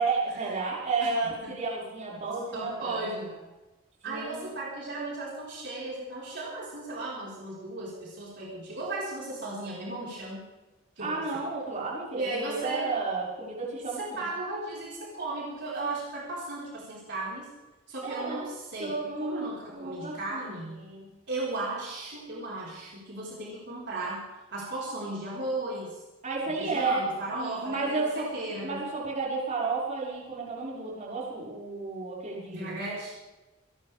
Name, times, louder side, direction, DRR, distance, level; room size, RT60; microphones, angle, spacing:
voice 1, 0.0-3.0 4.0-4.4 11.0-14.2 18.0-18.5 18.8-20.5 20.8-21.0 26.2-27.1 27.3-28.3 28.6-32.7, right 3 dB, 35° right, -6 dB, 6.0 m, -32 dB
voice 2, 2.5-3.3 4.0-10.4 11.0-11.4 12.1-12.9 14.0-17.4 17.9-18.9 19.2-20.8 21.3-26.0 26.5-28.8 32.5-33.2, right 2 dB, 60° right, -6 dB, 5.1 m, -36 dB
28.5 x 12.0 x 3.6 m, 1.1 s
head